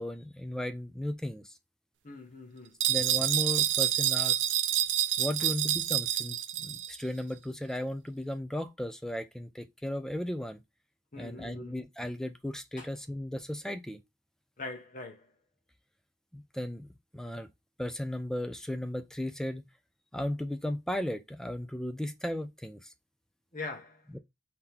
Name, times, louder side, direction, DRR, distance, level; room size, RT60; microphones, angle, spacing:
voice 1, 0.0-1.5 2.9-4.5 5.2-10.6 11.2-14.0 16.3-16.9 17.1-17.5 17.8-19.7 20.1-22.9 24.1-24.2, left 1 dB, 5° left, 0.5 m, -35 dB
voice 2, 2.0-2.8 5.4-5.5 11.1-11.7 12.8-12.9 14.6-15.3 23.5-24.0, left 3 dB, 45° left, 1.2 m, -42 dB
sound 1, 2.8-6.9, right 12 dB, 90° right, 0.4 m, -28 dB
3.8 x 2.9 x 3.3 m
head